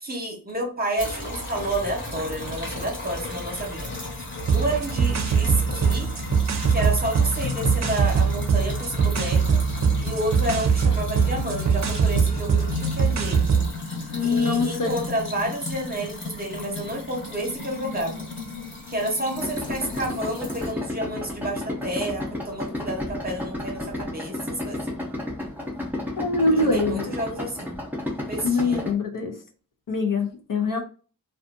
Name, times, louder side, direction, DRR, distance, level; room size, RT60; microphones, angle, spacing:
voice 1, 0.0-3.9 4.5-6.1 6.7-9.6 10.0-13.6 14.2-18.3 18.9-25.0 26.5-27.8 28.2-28.9 30.7-30.8, right 1 dB, 25° right, 0.9 m, -30 dB
sound 1, 1.0-20.7, left 3 dB, 30° left, 1.0 m, -34 dB
sound 2, 4.4-13.7, right 6 dB, 50° right, 0.5 m, -22 dB
voice 2, 14.1-14.9 26.2-27.1 28.4-29.4 29.9-30.8, left 3 dB, 60° left, 0.6 m, -23 dB
Idling, 19.4-28.9, left 1 dB, 5° right, 0.6 m, -32 dB
2.5 x 2.4 x 2.5 m
wide cardioid pair, 115°, 36 cm